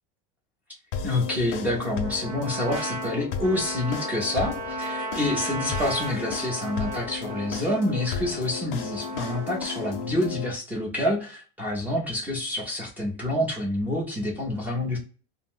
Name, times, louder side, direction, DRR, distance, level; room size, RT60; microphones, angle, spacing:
sound 1, 0.9-10.5, left 7 dB, 65° left, 0.5 m, -34 dB
voice 1, 1.0-15.0, left 1 dB, 5° right, -3 dB, 0.4 m, -27 dB
Trumpet, 2.0-10.1, right 3 dB, 55° right, 0.8 m, -36 dB
2.5 x 2.0 x 3.4 m, 0.37 s
supercardioid pair, 165°, 30 cm